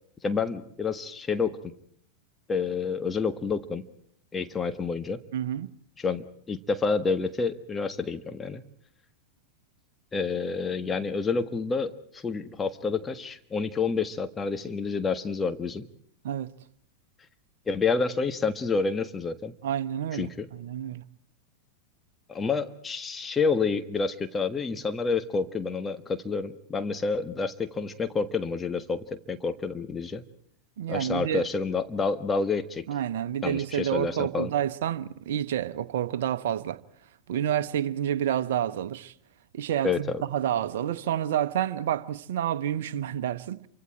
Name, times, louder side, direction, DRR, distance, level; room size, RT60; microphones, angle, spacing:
voice 1, 0.2-1.7 2.5-3.8 4.3-5.2 6.0-8.6 10.1-15.8 17.7-19.5 20.1-20.5 22.3-30.2 30.9-32.8 33.4-34.5 39.8-40.2, left 4 dB, 15° left, 1.6 m, -29 dB
voice 2, 5.3-5.7 16.2-16.5 19.6-21.0 30.8-31.4 32.9-36.8 37.3-39.1 39.5-43.7, right 10 dB, 60° right, 1.2 m, -29 dB
28.5 x 25.0 x 4.5 m
figure-of-eight pair, 90°, 0 cm